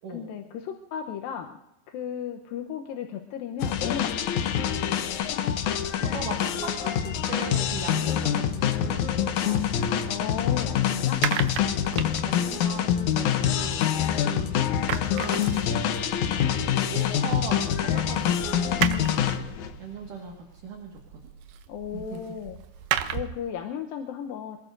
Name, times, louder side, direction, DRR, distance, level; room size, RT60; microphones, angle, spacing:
voice 1, 0.1-1.6 1.9-4.2 10.1-11.2 18.0-18.1 18.9-19.2 21.7-22.6 23.1-24.6, left 8 dB, 75° left, 4 dB, 2.4 m, -35 dB
sound 1, 3.6-19.7, left 9 dB, 90° left, 1.6 m, -26 dB
voice 2, 6.0-9.6 11.9-14.5 15.1-15.8 16.3-18.9 19.8-21.3 21.9-22.4, right 5 dB, 60° right, 0 dB, 3.0 m, -39 dB
sound 2, 9.7-14.4 14.6-23.5, right 10 dB, 80° right, 1.9 m, -35 dB
27.0 x 20.0 x 2.7 m, 0.90 s
omnidirectional pair, 4.8 m